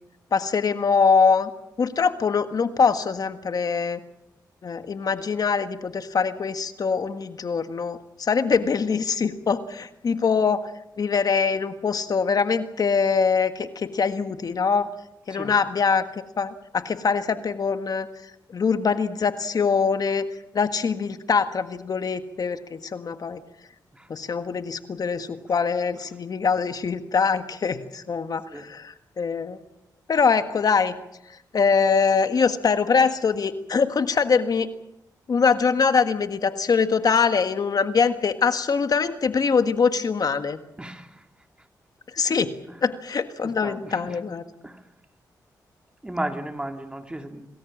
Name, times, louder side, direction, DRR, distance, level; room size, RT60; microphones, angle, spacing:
voice 1, 0.3-1.5 1.8-4.0 4.6-10.6 11.0-14.9 15.3-18.1 18.5-20.3 20.5-23.4 24.1-29.6 30.1-30.9 31.5-34.7 35.3-40.6 42.1-42.5 42.8-44.4, left 5 dB, 55° left, 9 dB, 1.6 m, -23 dB
voice 2, 43.4-44.2 44.6-44.8 46.0-47.5, right 1 dB, 15° right, 5 dB, 2.7 m, -34 dB
27.5 x 20.0 x 7.4 m, 0.83 s
cardioid pair, 75°, 7 cm